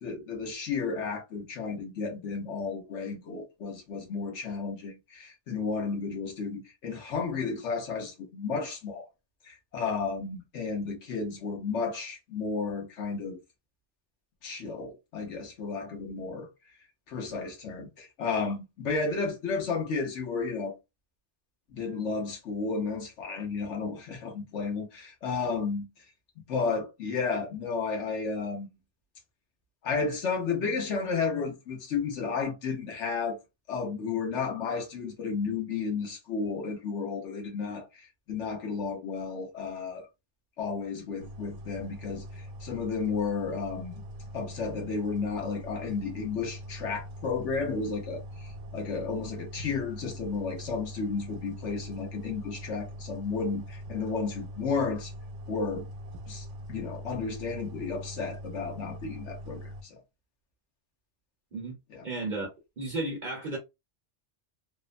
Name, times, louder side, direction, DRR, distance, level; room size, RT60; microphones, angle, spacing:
voice 1, 0.0-9.1 9.4-13.4 14.4-16.5 17.1-20.8 21.7-25.9 26.4-28.7 29.8-33.4 33.7-40.1 40.6-43.9 44.3-55.1 55.5-55.8 56.3-60.0 61.9-62.1, left 4 dB, 80° left, 1.2 m, -33 dB
sound 1, 41.2-59.8, equal, 90° right, 0.9 m, -42 dB
voice 2, 62.0-62.5 62.8-63.6, right 2 dB, 45° right, 0.9 m, -33 dB
3.1 x 2.1 x 2.4 m
omnidirectional pair, 1.2 m